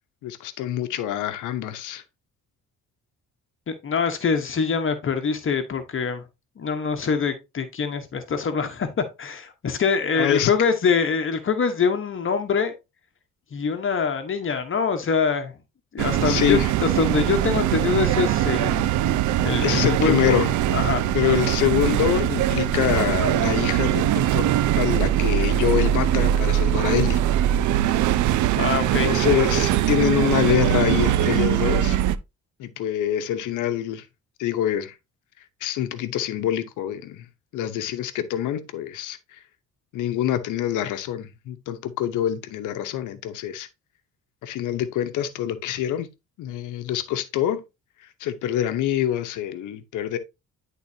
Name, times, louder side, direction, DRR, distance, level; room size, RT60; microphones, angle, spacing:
voice 1, 0.2-2.0 10.1-10.5 16.2-16.7 19.6-20.5 21.1-24.5 24.8-27.2 29.0-32.0 32.6-34.1 34.4-35.0 35.6-37.3 37.5-39.4 39.9-43.7 44.4-46.1 46.4-47.6 48.0-50.2, left 11 dB, 90° left, 0.9 m, -25 dB
voice 2, 3.7-6.2 6.6-12.7 13.5-15.5 15.9-18.9 19.4-20.4 20.7-21.0 28.6-29.1, left 5 dB, 45° left, 1.0 m, -24 dB
sound 1, 16.0-32.2, right 12 dB, 75° right, 0.5 m, -22 dB
10.5 x 3.9 x 2.7 m
cardioid pair, 90°, 30 cm